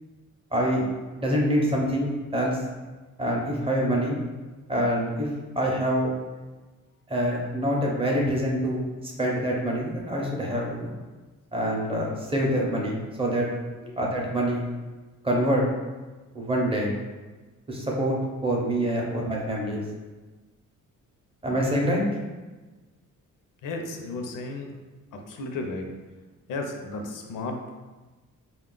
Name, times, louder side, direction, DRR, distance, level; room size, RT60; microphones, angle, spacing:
voice 1, 0.5-0.8 1.2-2.6 3.2-4.2 4.7-5.3 5.6-6.1 7.1-11.0 11.5-13.5 14.0-14.6 15.2-15.6 16.3-16.9 17.7-18.2 18.4-19.8 21.4-22.0, equal, 20° right, -2 dB, 0.5 m, -25 dB
voice 2, 23.6-24.7 25.1-25.9 26.5-27.8, left 2 dB, 90° left, 3 dB, 0.6 m, -34 dB
4.1 x 2.3 x 3.7 m, 1.2 s
wide cardioid pair, 180°, 31 cm